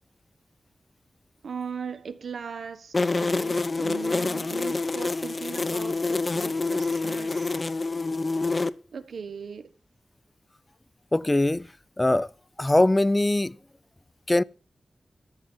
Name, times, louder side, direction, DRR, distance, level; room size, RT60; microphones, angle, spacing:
voice 1, 1.4-7.7 8.9-9.7, right 6 dB, 90° right, 1.5 m, -39 dB
sound 1, 2.9-8.7, left 3 dB, 45° left, 1.0 m, -27 dB
voice 2, 11.1-11.7 12.0-12.3 12.6-13.6 14.3-14.4, left 1 dB, 25° left, 0.6 m, -21 dB
14.0 x 7.3 x 7.4 m
cardioid pair, 55°, 0 cm